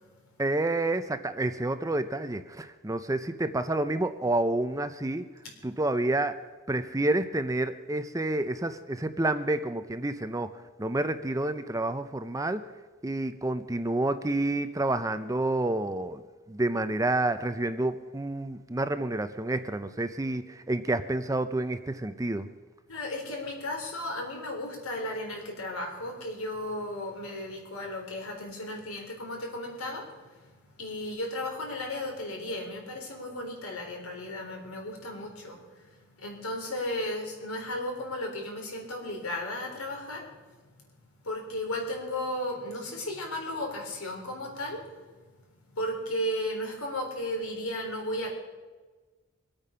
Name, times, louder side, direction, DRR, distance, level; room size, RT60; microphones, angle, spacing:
voice 1, 0.4-5.3 5.6-6.3 6.7-10.5 10.8-12.6 13.0-16.2 16.5-22.5, right 2 dB, 15° right, 10 dB, 0.5 m, -29 dB
voice 2, 22.9-30.1 30.8-40.3 41.2-44.9 45.7-48.3, left 1 dB, 85° left, 1 dB, 3.9 m, -35 dB
23.5 x 8.8 x 5.6 m, 1.3 s
head